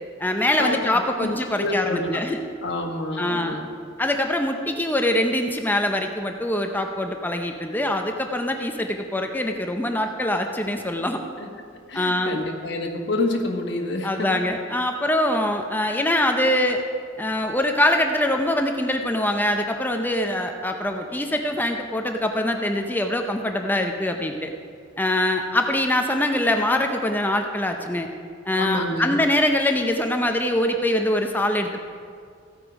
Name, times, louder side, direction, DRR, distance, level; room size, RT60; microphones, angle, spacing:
voice 1, 0.2-2.4 3.2-3.6 4.0-11.2 11.9-12.4 14.0-16.8 17.2-24.5 25.0-28.1 28.5-31.8, left 1 dB, 10° left, 4 dB, 0.6 m, -23 dB
voice 2, 1.6-2.2 2.6-3.6 11.4-11.5 11.9-14.3 28.5-29.2, left 2 dB, 65° left, 2 dB, 1.4 m, -27 dB
15.0 x 8.3 x 5.1 m, 2.1 s
head